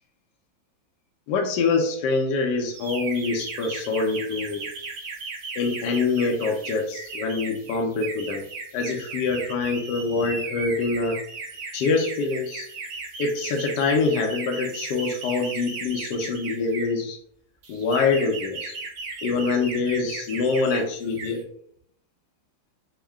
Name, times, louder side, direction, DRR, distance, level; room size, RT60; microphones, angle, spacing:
voice 1, 1.3-4.7 5.6-8.4 8.7-11.2 11.7-12.7 13.2-17.2 17.7-18.7 19.2-21.4, left 4 dB, 70° left, 1 dB, 1.1 m, -25 dB
sound 1, 2.7-17.0 17.6-20.8 21.1-21.4, right 4 dB, 65° right, 1.4 m, -36 dB
4.4 x 2.1 x 3.5 m, 0.64 s
omnidirectional pair, 2.2 m